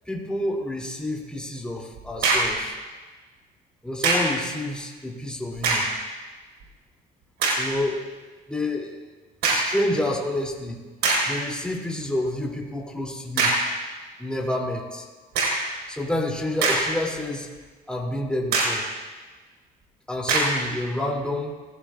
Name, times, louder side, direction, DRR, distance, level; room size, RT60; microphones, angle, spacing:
voice 1, 0.1-2.7 3.8-5.9 7.6-8.1 8.5-9.0 9.5-10.8 11.2-13.5 14.2-15.1 15.9-17.5 17.9-18.8 20.1-21.5, left 1 dB, 5° left, -1 dB, 2.9 m, -28 dB
sound 1, 2.0-2.6 4.0-4.4 5.5-6.0 6.6-6.7 7.4-7.7 9.4-9.8 10.5-10.6 11.0-11.4 13.4-13.8 15.3-15.7 16.4-17.2 17.6-17.7 18.5-18.9 20.3-20.7, right 3 dB, 80° right, 4.9 m, -23 dB
26.0 x 16.0 x 2.5 m, 1.3 s
cardioid pair, 110°, 17 cm